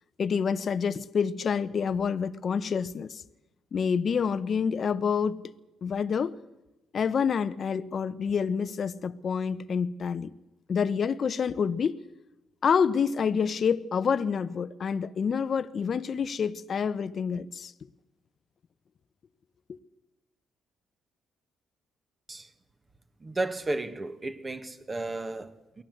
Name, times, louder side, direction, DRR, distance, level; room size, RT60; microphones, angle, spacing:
voice 1, 0.2-3.2 3.7-5.5 5.8-6.4 6.9-10.3 10.7-12.0 12.6-17.7 19.7-19.8, left 6 dB, 50° left, 0.8 m, -28 dB
voice 2, 23.2-25.8, right 2 dB, 25° right, 1.8 m, -33 dB
23.0 x 17.5 x 7.9 m
cardioid pair, 90°, 0 cm